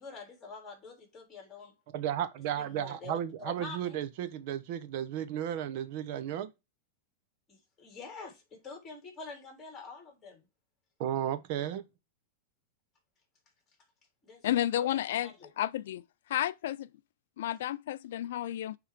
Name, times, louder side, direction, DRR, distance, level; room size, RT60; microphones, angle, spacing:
voice 1, 0.0-1.7 2.6-4.0 7.5-10.4 14.2-14.5 14.8-15.5, left 4 dB, 20° left, 3.9 m, -46 dB
voice 2, 1.9-6.5 11.0-11.8, right 10 dB, 55° right, 0.9 m, -34 dB
voice 3, 14.4-15.3 15.6-16.0 16.3-16.9 17.4-18.8, left 12 dB, 75° left, 0.3 m, -31 dB
9.3 x 3.7 x 4.9 m
supercardioid pair, 145°, 0 cm